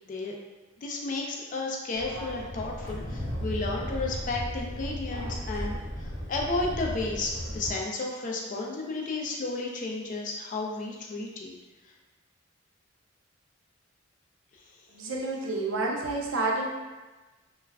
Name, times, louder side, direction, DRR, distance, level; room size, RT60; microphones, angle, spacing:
voice 1, 0.8-5.8 6.3-11.5, left 3 dB, 40° left, 0 dB, 0.4 m, -32 dB
sound 1, 1.9-7.7, equal, 25° right, 1.0 m, -35 dB
voice 2, 14.9-16.7, right 2 dB, 75° right, -1 dB, 0.5 m, -29 dB
2.3 x 2.1 x 3.3 m, 1.2 s
head